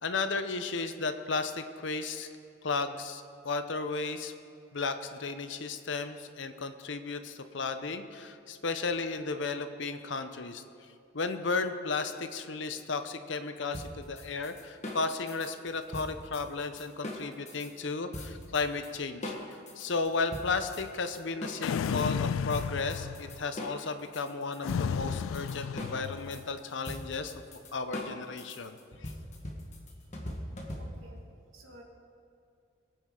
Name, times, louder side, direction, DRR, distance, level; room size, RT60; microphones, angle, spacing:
voice 1, 0.0-2.3 2.6-4.3 4.7-10.6 11.1-19.4 19.8-27.3 27.7-29.1, left 4 dB, 65° left, 9 dB, 0.8 m, -34 dB
sound 1, 13.7-17.7 18.1-18.9 19.2-22.1 22.5-31.2, left 1 dB, 35° left, 1.6 m, -41 dB
sound 2, 21.6-23.5 24.6-26.4, left 7 dB, 80° left, 0.3 m, -33 dB
voice 2, 30.8-31.2 31.5-31.8, right 1 dB, 75° right, 0 dB, 2.2 m, -52 dB
22.0 x 9.3 x 3.9 m, 2.5 s
head